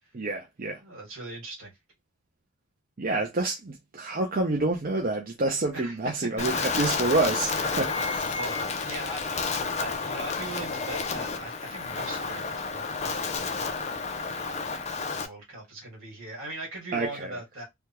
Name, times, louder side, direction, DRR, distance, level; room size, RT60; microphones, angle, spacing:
voice 1, 0.1-0.8 3.0-8.0 16.9-17.4, right 2 dB, 45° right, 0.6 m, -28 dB
voice 2, 0.8-1.7 5.7-5.9 8.3-9.4 9.8-13.9 15.1-17.6, right 1 dB, 75° right, 2.0 m, -40 dB
Wind, 6.4-15.3, left 4 dB, 30° left, 0.4 m, -31 dB
sound 1, 7.4-9.0 9.8-11.3 11.6-12.4, left 2 dB, 75° left, 0.8 m, -42 dB
3.4 x 2.2 x 2.9 m
head